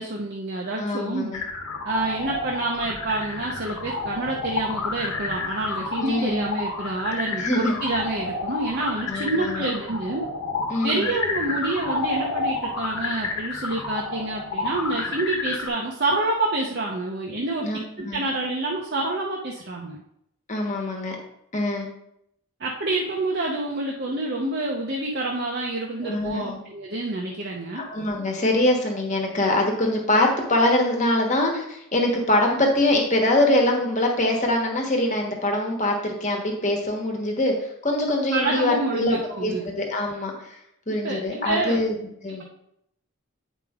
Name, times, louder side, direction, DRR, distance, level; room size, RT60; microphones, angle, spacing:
voice 1, 0.0-1.3 1.8-10.3 10.8-17.7 18.0-20.0 22.6-27.8 38.3-39.6 41.0-41.8 42.3-42.4, right 2 dB, 45° right, -2 dB, 0.8 m, -27 dB
voice 2, 0.8-1.4 6.0-6.4 7.4-7.7 9.1-9.7 10.7-11.1 17.6-17.8 18.0-18.2 20.5-21.2 21.5-21.9 26.0-26.6 27.7-37.5 37.8-40.6 40.9-42.0 42.2-42.4, left 1 dB, 35° left, 1 dB, 1.3 m, -23 dB
sound 1, 1.3-15.7, left 3 dB, 80° left, 1.2 m, -30 dB
9.2 x 5.1 x 3.7 m, 0.77 s
head